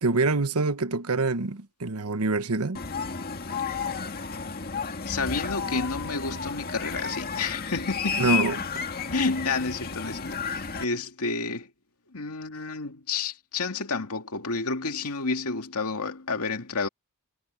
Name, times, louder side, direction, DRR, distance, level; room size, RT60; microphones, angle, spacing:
voice 1, 0.0-2.8 8.2-8.8, right 3 dB, 80° right, 1.1 m, -25 dB
sound 1, 2.7-10.8, left 5 dB, 45° left, 1.9 m, -32 dB
voice 2, 5.0-8.3 9.1-11.7 12.1-16.9, left 4 dB, 85° left, 2.2 m, -30 dB
head